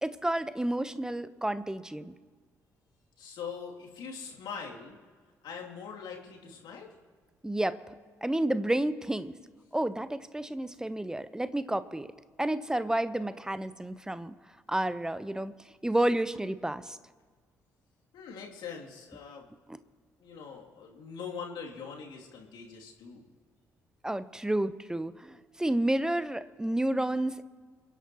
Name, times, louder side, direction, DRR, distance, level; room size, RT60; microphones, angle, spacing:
voice 1, 0.0-2.1 7.4-7.8 8.2-9.4 9.7-12.1 12.4-14.3 14.7-15.5 15.8-17.0 19.7-19.8 24.0-27.4, right 1 dB, 10° right, 14 dB, 0.9 m, -30 dB
voice 2, 3.2-5.0 5.4-6.9 18.1-19.5 20.2-23.2, left 6 dB, 65° left, -1 dB, 2.9 m, -42 dB
30.0 x 11.0 x 3.1 m, 1.5 s
hypercardioid pair, 45°, 8 cm